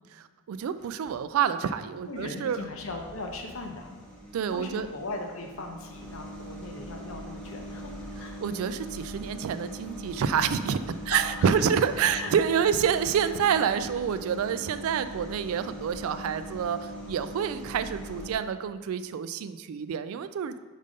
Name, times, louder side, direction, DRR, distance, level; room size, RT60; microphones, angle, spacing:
voice 1, 0.1-2.6 4.3-4.9 8.4-20.6, right 7 dB, 75° right, 11 dB, 0.3 m, -28 dB
sound 1, 0.6-1.2 1.7-18.3, equal, 5° left, 1.1 m, -42 dB
voice 2, 2.0-4.0 4.5-8.4 11.1-11.6 12.1-12.3, left 2 dB, 70° left, 3 dB, 0.9 m, -38 dB
5.4 x 5.2 x 5.1 m, 1.2 s
head